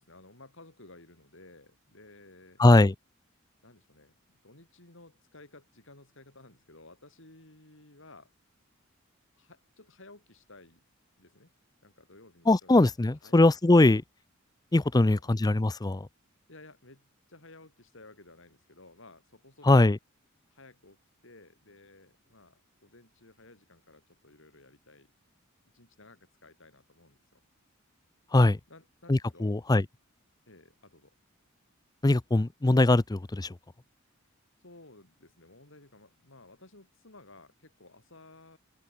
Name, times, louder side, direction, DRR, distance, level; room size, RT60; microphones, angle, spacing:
voice 1, 0.0-2.6 3.6-8.3 9.4-10.8 11.2-11.5 11.8-12.7 13.2-13.4 14.9-15.4 16.5-19.7 20.5-25.1 25.7-27.4 28.7-29.6 30.5-31.1 34.6-38.6, left 2 dB, 65° left, 5.2 m, -55 dB
voice 2, 2.6-2.9 12.5-14.0 14.7-16.1 19.7-20.0 28.3-28.6 29.1-29.8 32.0-33.5, left 2 dB, 20° left, 0.5 m, -21 dB
open air
head